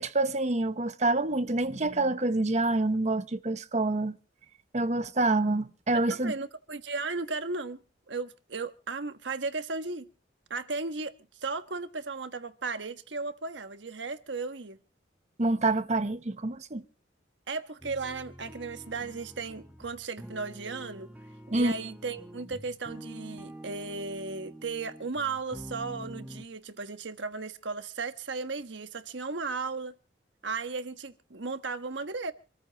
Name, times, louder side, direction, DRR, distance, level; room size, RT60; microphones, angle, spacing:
voice 1, 0.0-4.2 4.7-6.3 15.4-16.8 21.5-21.7, right 2 dB, 40° right, 1.0 m, -27 dB
voice 2, 5.9-7.8 8.1-10.1 10.5-14.8 17.5-21.1 21.5-29.9 30.4-32.3, right 4 dB, 80° right, 1.3 m, -35 dB
sound 1, 17.8-26.4, right 1 dB, 10° right, 1.4 m, -46 dB
27.0 x 14.0 x 3.0 m
head